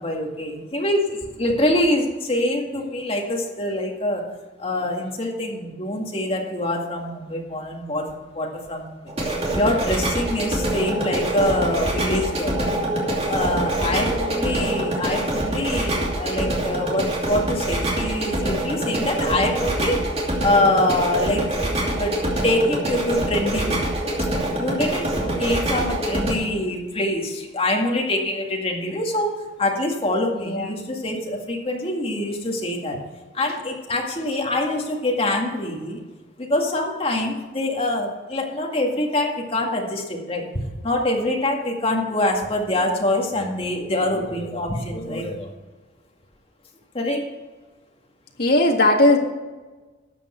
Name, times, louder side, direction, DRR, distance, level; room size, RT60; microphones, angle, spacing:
voice 1, 0.0-4.2 4.6-9.0 9.3-20.0 20.4-21.5 21.7-22.2 22.4-23.9 24.2-24.3 24.6-33.0 33.3-36.0 36.4-45.5 46.9-47.2, left 1 dB, 30° left, 0 dB, 2.1 m, -25 dB
sound 1, 9.1-26.3, right 1 dB, 35° right, 2.7 m, -25 dB
voice 2, 30.3-30.8 48.4-49.2, left 1 dB, 55° left, 1 dB, 1.9 m, -18 dB
13.0 x 8.4 x 4.5 m, 1.3 s
head